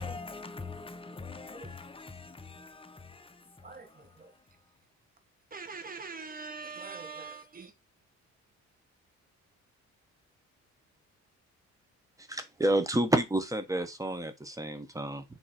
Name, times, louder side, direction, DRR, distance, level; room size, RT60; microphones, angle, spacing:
voice 1, 0.0-3.2, left 4 dB, 20° left, 0.8 m, -42 dB
voice 2, 1.3-1.8 3.6-4.3 5.5-7.7, right 4 dB, 30° right, 1.3 m, -43 dB
voice 3, 12.3-15.2, right 1 dB, 10° right, 1.1 m, -29 dB
7.7 x 3.0 x 4.3 m
cardioid pair, 90°, 30 cm